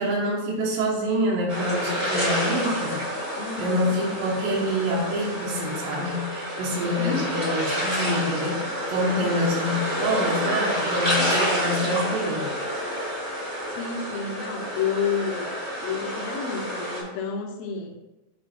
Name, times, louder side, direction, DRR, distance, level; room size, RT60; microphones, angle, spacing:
voice 1, 0.0-3.0 3.6-12.5, equal, 80° right, -3 dB, 2.9 m, -26 dB
sound 1, 1.5-17.0, equal, 20° right, 1.6 m, -29 dB
voice 2, 3.4-3.9 7.0-7.5 9.0-9.5 13.7-15.5 15.8-17.9, left 6 dB, 70° left, 1 dB, 1.7 m, -30 dB
7.4 x 3.2 x 4.4 m, 1.0 s
omnidirectional pair, 3.9 m